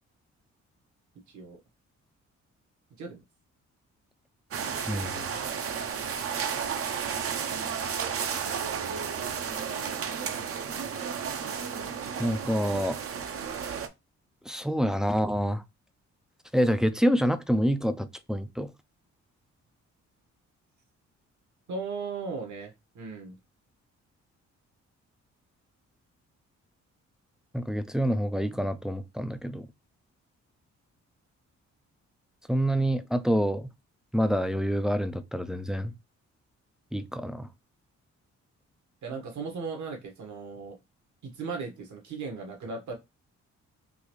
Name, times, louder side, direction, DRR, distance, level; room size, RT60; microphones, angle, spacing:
voice 1, 1.3-1.6 3.0-3.2 8.5-8.9 21.7-23.4 39.0-40.8 41.2-42.9, right 4 dB, 75° right, 1.5 m, -37 dB
sound 1, 4.5-13.9, right 7 dB, 50° right, 0.6 m, -33 dB
voice 2, 4.9-5.3 12.2-13.0 14.5-15.6 16.5-18.7 27.5-29.7 32.5-33.7 34.1-35.9 36.9-37.5, equal, ahead, 0.3 m, -27 dB
4.0 x 2.7 x 3.1 m
cardioid pair, 95°, 29 cm